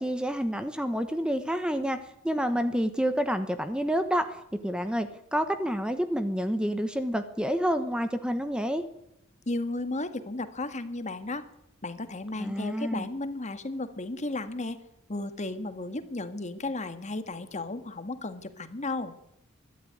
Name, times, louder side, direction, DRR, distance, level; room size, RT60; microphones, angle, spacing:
voice 1, 0.0-2.0 2.2-8.9 12.4-13.1, equal, 5° right, 9 dB, 1.1 m, -28 dB
voice 2, 9.5-11.5 11.8-14.8 15.1-19.1, left 2 dB, 35° left, 10 dB, 1.7 m, -34 dB
22.5 x 12.5 x 9.6 m, 0.81 s
head